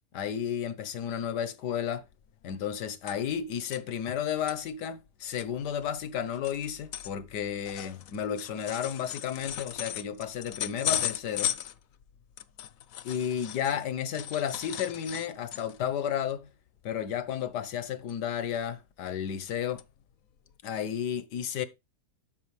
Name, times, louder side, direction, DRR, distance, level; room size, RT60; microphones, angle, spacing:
voice 1, 0.1-2.0 2.4-11.5 13.0-16.5 16.8-19.8 20.6-21.7, left 9 dB, 90° left, 1.6 m, -32 dB
sound 1, 2.1-2.2 2.4-3.4 3.7-3.8 4.3-4.6 5.1-5.2 5.4-13.8 14.1-15.9 16.3-16.5 16.8-17.0 18.1-18.6 19.1-19.5 19.8-19.9 20.5-20.6, left 10 dB, 65° left, 1.0 m, -37 dB
12.5 x 6.3 x 3.3 m
omnidirectional pair, 1.7 m